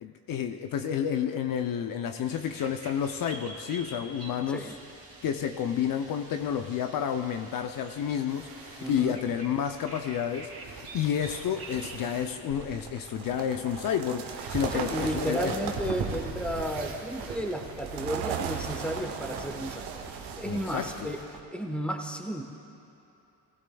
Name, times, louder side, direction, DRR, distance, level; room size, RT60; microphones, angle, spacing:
voice 1, 0.0-4.8 5.2-15.7 20.4-21.1, left 8 dB, 55° left, 6 dB, 0.6 m, -30 dB
sound 1, 2.2-12.0, right 2 dB, 35° right, 3.0 m, -47 dB
sound 2, 8.3-21.2, right 5 dB, 75° right, 1.8 m, -41 dB
voice 2, 8.8-9.1 14.7-22.4, right 1 dB, 5° left, 4 dB, 1.1 m, -33 dB
sound 3, 12.5-21.4, right 7 dB, 90° right, 0.9 m, -39 dB
17.0 x 16.0 x 2.3 m, 2.8 s
supercardioid pair, 80°, 41 cm